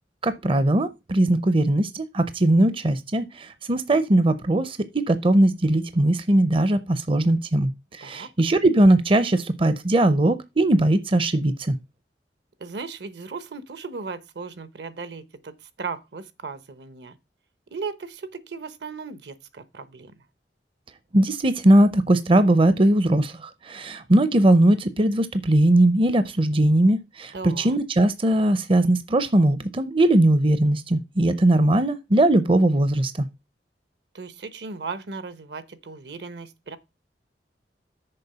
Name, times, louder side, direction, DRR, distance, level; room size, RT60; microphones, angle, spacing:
voice 1, 0.2-11.8 21.1-33.3, right 1 dB, 30° right, 0.5 m, -20 dB
voice 2, 12.6-17.2 17.7-20.1 27.3-27.8 34.1-36.8, right 4 dB, 70° right, 0.9 m, -36 dB
6.9 x 4.4 x 6.7 m
head